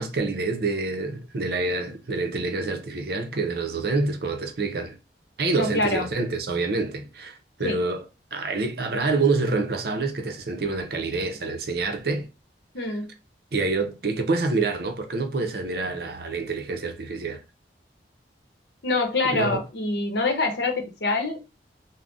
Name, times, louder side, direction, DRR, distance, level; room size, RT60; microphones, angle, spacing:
voice 1, 0.0-5.0 5.4-8.0 8.3-12.3 13.5-17.4 19.2-19.6, right 3 dB, 55° right, 0.5 m, -27 dB
voice 2, 5.5-6.1 7.6-7.8 12.7-13.1 18.8-21.4, left 2 dB, 70° left, 0.8 m, -25 dB
3.7 x 2.1 x 2.4 m
head